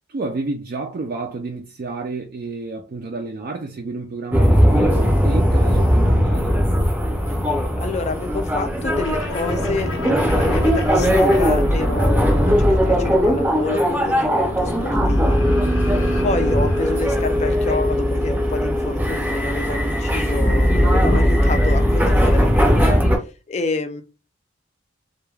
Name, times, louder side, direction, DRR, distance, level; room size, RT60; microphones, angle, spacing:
voice 1, 0.1-6.5, right 3 dB, 45° right, 0.3 m, -30 dB
sound 1, 4.3-23.2, equal, 10° right, 0.6 m, -18 dB
voice 2, 7.8-15.4 16.2-23.0 23.5-24.0, left 3 dB, 35° left, 0.3 m, -28 dB
sound 2, 8.9-17.9, left 2 dB, 80° left, 0.6 m, -35 dB
2.2 x 2.2 x 3.1 m
head